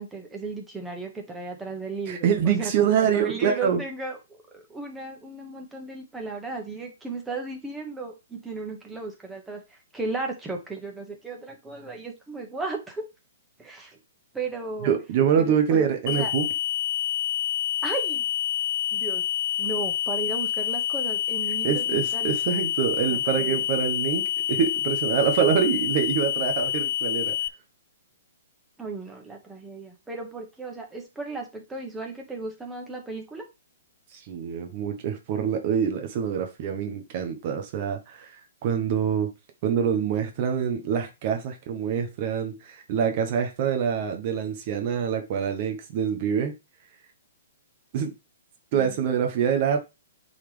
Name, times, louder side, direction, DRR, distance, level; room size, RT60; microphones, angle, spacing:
voice 1, 0.0-13.1 13.6-14.0 14.3-14.9 15.4-16.3 17.8-18.3 18.9-19.2 19.6-22.4 23.1-23.6 28.8-33.4 48.7-48.9, right 3 dB, 5° right, 1.5 m, -35 dB
voice 2, 2.1-3.8 14.8-16.5 21.6-27.3 34.1-39.3 39.6-46.5 47.9-48.1 48.7-49.8, right 7 dB, 40° right, 1.1 m, -25 dB
sound 1, 16.1-27.5, left 11 dB, 50° left, 0.4 m, -27 dB
8.4 x 4.1 x 3.4 m
hypercardioid pair, 155°, 0 cm